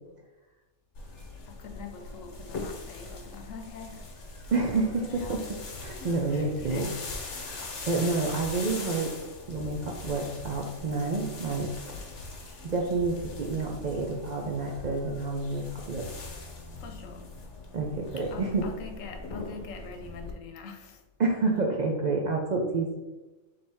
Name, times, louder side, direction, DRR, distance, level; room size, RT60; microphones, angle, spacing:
sound 1, 1.0-20.3, left 3 dB, 65° left, 1.2 m, -41 dB
voice 1, 1.5-4.1 4.8-5.4 6.0-6.9 16.8-17.3 18.3-21.0, left 5 dB, 90° left, 4 dB, 1.1 m, -44 dB
voice 2, 4.5-6.9 7.3-9.1 9.5-11.7 12.6-16.1 17.7-18.7 21.2-23.0, right 3 dB, 70° right, 0 dB, 0.4 m, -29 dB
4.1 x 3.3 x 3.4 m, 1.1 s
omnidirectional pair, 1.3 m